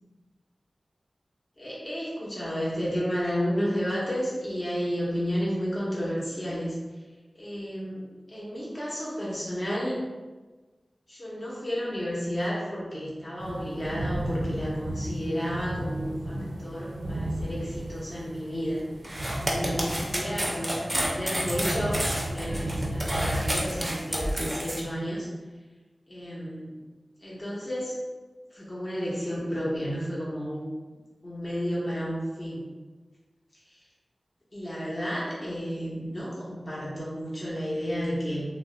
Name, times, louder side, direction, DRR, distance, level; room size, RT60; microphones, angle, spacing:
voice 1, 1.6-6.8 7.3-10.0 11.1-18.8 19.4-22.0 22.3-25.3 26.1-26.7 27.2-28.0 28.5-30.7 31.2-32.6 33.7-33.8 34.5-38.4, equal, 35° left, -7 dB, 0.8 m, -32 dB
sound 1, 13.4-24.2, right 1 dB, 90° right, 0.4 m, -34 dB
sound 2, 19.0-24.8, equal, 15° right, 0.5 m, -30 dB
2.3 x 2.0 x 3.6 m, 1.3 s
wide cardioid pair, 55°, 0 cm